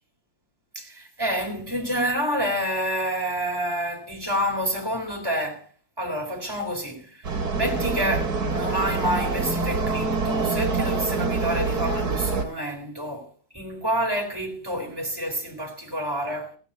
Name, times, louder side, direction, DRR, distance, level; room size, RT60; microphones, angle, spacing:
voice 1, 0.8-5.7 6.0-13.3 13.5-16.6, equal, 10° right, 3.5 m, -28 dB
sound 1, 7.2-12.4, right 4 dB, 50° right, 2.5 m, -25 dB
16.5 x 9.4 x 4.3 m
omnidirectional pair, 2.1 m